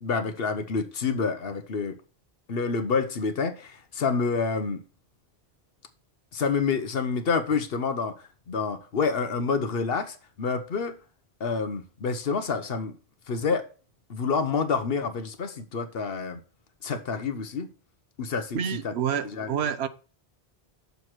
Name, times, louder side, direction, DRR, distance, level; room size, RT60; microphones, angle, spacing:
voice 1, 0.0-2.0 2.5-4.8 6.3-8.1 8.5-11.0 11.4-12.9 13.3-13.7 14.1-16.4 16.8-17.7 18.2-18.9 19.3-19.5, left 5 dB, 65° left, 1.1 m, -28 dB
voice 2, 18.5-19.9, right 8 dB, 85° right, 1.0 m, -28 dB
6.8 x 4.7 x 5.9 m
omnidirectional pair, 1.1 m